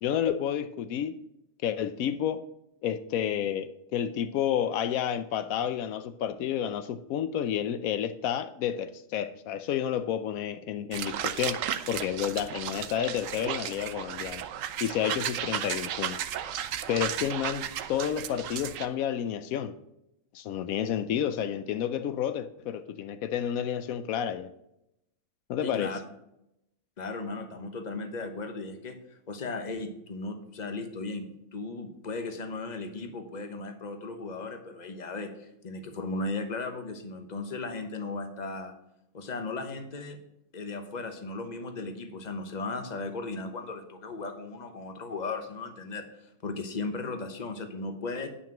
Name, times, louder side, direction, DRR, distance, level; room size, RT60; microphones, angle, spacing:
voice 1, 0.0-1.2 1.6-2.4 2.8-11.6 11.9-14.4 14.8-16.2 16.9-19.7 20.3-24.5 25.5-25.9, left 9 dB, 85° left, 12 dB, 1.0 m, -30 dB
sound 1, 10.9-18.9, right 10 dB, 75° right, 1.0 m, -34 dB
voice 2, 25.6-26.0 27.0-38.7 39.1-40.2 40.5-48.3, left 3 dB, 35° left, 7 dB, 1.1 m, -36 dB
9.7 x 6.0 x 6.0 m, 0.83 s
omnidirectional pair, 1.4 m